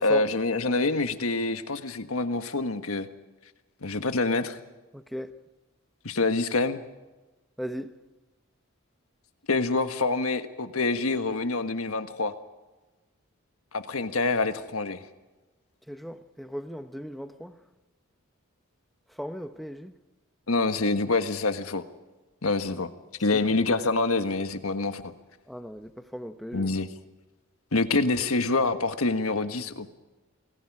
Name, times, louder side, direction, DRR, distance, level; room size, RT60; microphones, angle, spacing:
voice 1, 0.0-3.1 3.8-4.6 6.0-6.8 9.5-12.3 13.7-15.0 20.5-21.8 22.4-22.9 23.2-25.1 26.5-26.9 27.7-29.9, left 3 dB, 85° left, 1.5 m, -26 dB
voice 2, 4.9-5.4 7.6-7.9 15.9-17.5 19.2-19.9 23.3-23.4 25.5-26.7, equal, ahead, 0.9 m, -37 dB
28.5 x 19.5 x 4.9 m
head